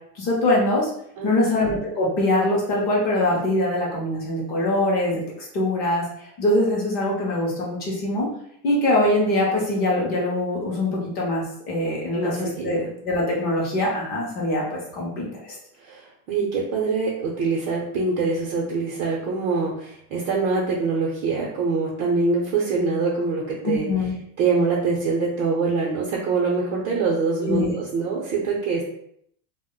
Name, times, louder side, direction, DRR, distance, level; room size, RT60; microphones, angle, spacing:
voice 1, 0.1-0.9 1.2-8.3 8.6-15.5 23.6-24.1 27.4-27.7, left 1 dB, 20° left, -3 dB, 0.5 m, -23 dB
voice 2, 1.2-1.5 12.1-12.9 15.8-23.9 24.4-28.8, right 4 dB, 55° right, -4 dB, 0.7 m, -24 dB
2.1 x 2.1 x 3.6 m, 0.70 s
supercardioid pair, 170°, 44 cm